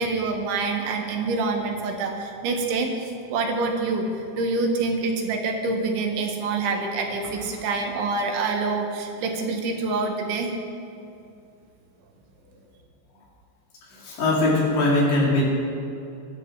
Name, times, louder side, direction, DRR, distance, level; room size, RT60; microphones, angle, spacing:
voice 1, 0.0-4.1 4.4-10.5, right 3 dB, 85° right, 2 dB, 4.1 m, -26 dB
voice 2, 7.5-7.9 13.8-15.4, left 2 dB, 75° left, -5 dB, 6.3 m, -22 dB
24.0 x 12.0 x 4.9 m, 2.5 s
omnidirectional pair, 5.2 m